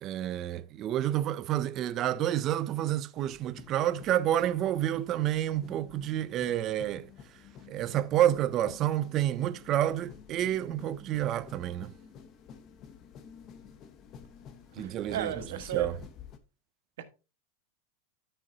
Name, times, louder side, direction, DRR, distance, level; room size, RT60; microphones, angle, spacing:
voice 1, 0.0-7.1 7.7-11.9 14.8-15.3 15.7-16.0, right 12 dB, 25° right, 0.4 m, -29 dB
sound 1, 3.2-16.4, left 7 dB, 25° left, 0.8 m, -51 dB
voice 2, 14.8-15.9 17.0-17.1, right 10 dB, 70° right, 1.4 m, -35 dB
13.5 x 5.5 x 2.8 m
supercardioid pair, 175°, 0 cm